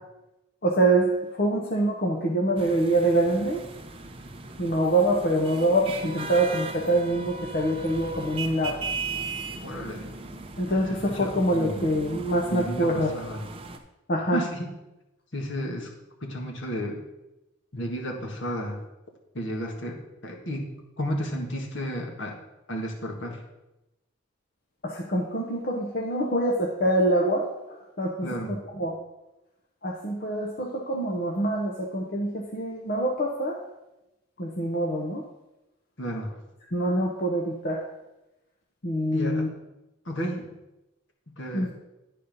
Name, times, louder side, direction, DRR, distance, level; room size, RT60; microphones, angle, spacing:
voice 1, 0.6-3.6 4.6-8.8 10.6-13.2 14.1-14.4 24.8-28.9 29.8-33.6 34.4-35.2 36.7-37.8 38.8-39.5 41.5-41.7, right 1 dB, 50° left, -1 dB, 0.8 m, -25 dB
sound 1, 2.6-13.8, right 3 dB, 25° right, 0.6 m, -38 dB
voice 2, 9.6-10.1 11.2-11.9 12.5-13.5 14.3-14.7 15.3-15.9 16.2-17.0 17.7-18.8 19.3-20.0 20.2-20.7 21.0-22.4 22.7-23.4 28.2-28.6 36.0-36.3 39.1-39.4 40.0-40.5 41.4-41.7, equal, 65° left, 1 dB, 1.6 m, -32 dB
10.5 x 4.2 x 5.3 m, 0.96 s
head